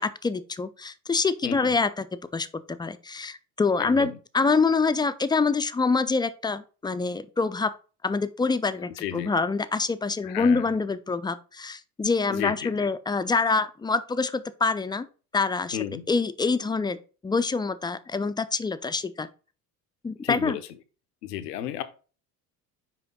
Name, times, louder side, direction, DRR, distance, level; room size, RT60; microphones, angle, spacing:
voice 1, 0.0-2.1 2.3-7.7 8.0-15.1 15.3-15.8 16.1-17.0 17.2-19.3 20.0-20.6, left 4 dB, 10° left, 0.4 m, -26 dB
voice 2, 1.4-1.8 3.8-4.2 9.0-9.3 10.2-10.7 12.3-12.9 15.7-16.1 20.2-20.6 21.2-21.8, left 11 dB, 80° left, 0.8 m, -33 dB
5.9 x 5.1 x 3.7 m
hypercardioid pair, 60°, 47 cm